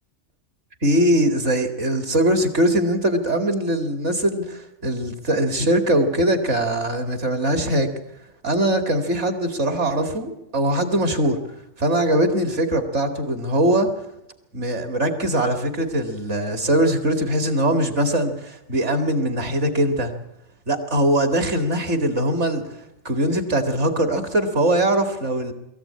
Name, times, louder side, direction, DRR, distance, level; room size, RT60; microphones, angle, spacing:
voice 1, 0.8-7.9 8.4-11.4 11.8-13.9 14.5-20.1 20.7-22.6 23.0-25.5, right 1 dB, 65° right, 6 dB, 2.6 m, -21 dB
22.5 x 15.0 x 8.8 m, 0.87 s
omnidirectional pair, 1.3 m